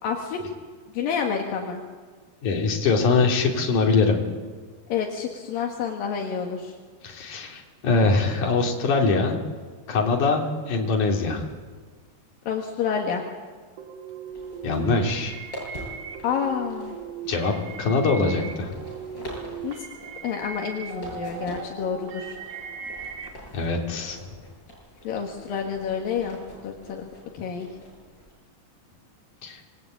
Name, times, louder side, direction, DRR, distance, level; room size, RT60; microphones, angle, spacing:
voice 1, 0.0-0.4 0.9-1.8 4.9-6.8 12.5-13.2 16.2-17.0 19.6-19.9 20.2-22.4 25.0-27.1 27.3-27.7, left 7 dB, 75° left, 1 dB, 3.5 m, -29 dB
voice 2, 2.4-4.3 7.0-9.4 9.9-11.4 14.6-15.4 17.3-18.8 23.5-24.2 29.4-29.6, left 4 dB, 60° left, 1 dB, 4.4 m, -23 dB
sound 1, 13.8-23.3, right 6 dB, 60° right, 3.7 m, -38 dB
sound 2, 14.3-28.3, equal, 30° left, 8.6 m, -44 dB
26.5 x 21.0 x 9.0 m, 1.5 s
omnidirectional pair, 4.1 m